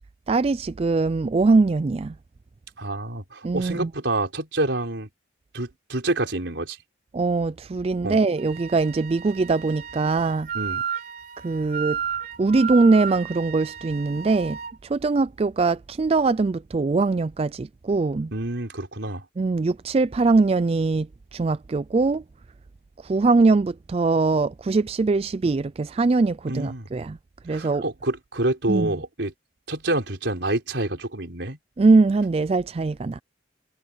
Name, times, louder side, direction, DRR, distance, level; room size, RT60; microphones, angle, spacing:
voice 1, 0.3-2.2 3.4-3.9 7.1-10.5 11.4-12.0 12.4-18.3 19.4-22.2 23.0-27.2 27.4-27.8 28.7-28.9 31.8-33.2, right 3 dB, 35° right, 0.3 m, -22 dB
voice 2, 2.8-5.1 5.5-6.8 8.0-8.2 10.5-10.8 18.3-19.2 26.5-26.9 27.5-29.3 29.7-31.6, right 2 dB, 80° right, 4.2 m, -27 dB
Wind instrument woodwind instrument, 8.4-14.8, right 7 dB, 50° right, 5.0 m, -33 dB
head